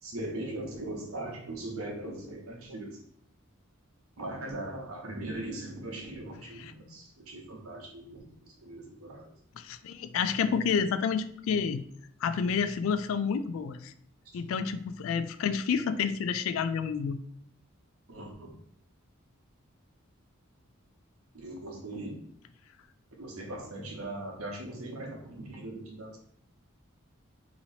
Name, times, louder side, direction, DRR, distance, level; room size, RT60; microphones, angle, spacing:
voice 1, 0.0-3.0 4.2-9.3 14.2-14.4 18.1-18.5 21.3-22.2 23.2-26.2, right 1 dB, 90° right, 0 dB, 1.0 m, -40 dB
voice 2, 9.6-11.8 12.2-13.9 14.3-17.2, left 6 dB, 70° left, 11 dB, 0.3 m, -29 dB
3.0 x 2.8 x 4.1 m, 0.69 s
head